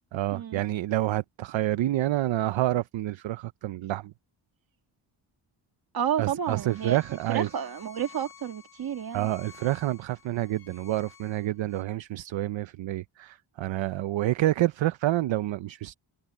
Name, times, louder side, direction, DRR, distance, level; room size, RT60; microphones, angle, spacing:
voice 1, 0.1-4.1 6.2-7.5 9.1-15.9, right 14 dB, 70° right, 0.7 m, -28 dB
voice 2, 5.9-7.0 7.3-9.3, right 9 dB, 50° right, 1.7 m, -31 dB
Bowed string instrument, 6.4-11.8, left 9 dB, 50° left, 1.9 m, -53 dB
wide cardioid pair, 180°, 48 cm